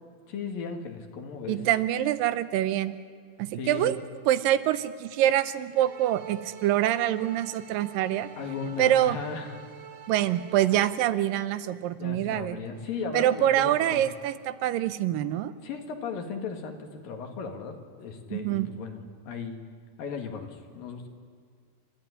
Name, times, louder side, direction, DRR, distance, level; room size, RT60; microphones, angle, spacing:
voice 1, 0.3-1.6 3.6-3.8 8.4-9.6 12.0-14.0 15.6-17.8 18.0-19.6 20.0-21.1, left 5 dB, 85° left, 4 dB, 3.7 m, -36 dB
voice 2, 1.5-2.9 3.4-8.3 8.6-9.2 10.1-12.6 13.1-15.5 18.3-18.7, right 12 dB, 85° right, 13 dB, 2.5 m, -25 dB
sound 1, 5.7-11.0, right 8 dB, 65° right, 1.3 m, -46 dB
29.0 x 14.0 x 9.9 m, 2.1 s
omnidirectional pair, 3.9 m